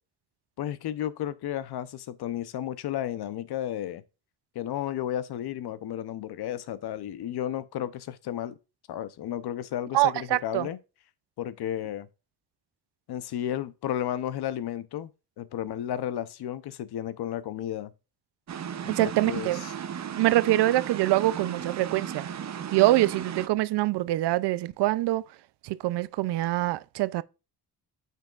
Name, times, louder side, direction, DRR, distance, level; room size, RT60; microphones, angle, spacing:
voice 1, 0.6-4.0 4.5-8.6 8.9-10.8 11.4-12.1 13.1-15.1 15.4-17.9 18.8-19.7, left 11 dB, 70° left, 0.8 m, -33 dB
voice 2, 9.9-10.7 18.9-19.6 20.2-22.3 22.7-25.2 25.6-27.2, right 16 dB, 80° right, 0.5 m, -24 dB
sound 1, 18.5-23.5, right 8 dB, 45° right, 0.7 m, -36 dB
8.9 x 5.5 x 2.4 m
cardioid pair, 110°, 40 cm